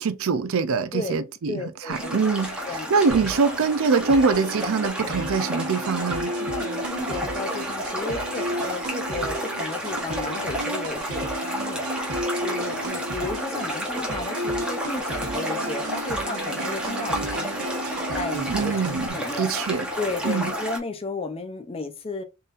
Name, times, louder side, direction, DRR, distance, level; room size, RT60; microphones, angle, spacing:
voice 1, 0.0-2.6 2.9-6.3 18.5-19.9 20.2-20.5, right 4 dB, 70° right, 0.5 m, -24 dB
voice 2, 1.5-2.2 2.7-2.9 6.4-11.9 12.4-17.5 18.1-18.7 19.0-19.5 20.0-22.2, left 3 dB, 25° left, 0.5 m, -33 dB
sound 1, 1.9-20.8, equal, 5° right, 1.1 m, -31 dB
sound 2, 3.1-19.1, right 1 dB, 85° right, 1.1 m, -33 dB
4.0 x 3.9 x 2.5 m
head